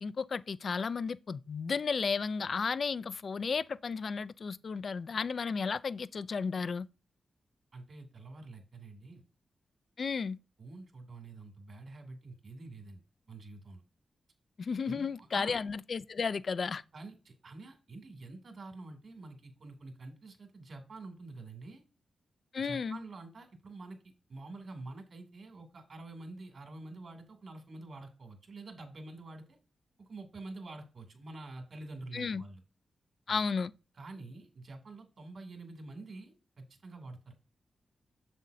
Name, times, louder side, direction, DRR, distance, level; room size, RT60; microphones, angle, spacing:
voice 1, 0.0-6.9 10.0-10.4 14.6-16.8 22.5-23.0 32.1-32.4 33.3-33.7, left 5 dB, 55° left, 0.4 m, -33 dB
voice 2, 7.7-9.2 10.6-13.0 13.3-13.8 14.8-15.6 16.9-21.8 22.6-29.6 30.0-32.6 33.3-33.5 33.9-37.3, right 2 dB, 55° right, 2.6 m, -47 dB
7.7 x 7.4 x 2.7 m
wide cardioid pair, 100°, 0 cm